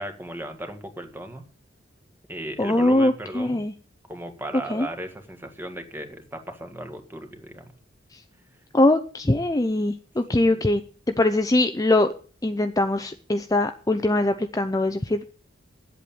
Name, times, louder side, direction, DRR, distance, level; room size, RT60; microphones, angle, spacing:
voice 1, 0.0-1.4 2.3-3.6 4.1-7.6 10.3-10.5, right 1 dB, 10° right, 5 dB, 1.7 m, -36 dB
voice 2, 2.6-3.7 4.7-4.9 8.7-10.8 11.1-12.1 12.4-15.2, left 2 dB, 20° left, 8 dB, 0.6 m, -22 dB
9.3 x 8.2 x 8.5 m, 0.40 s
head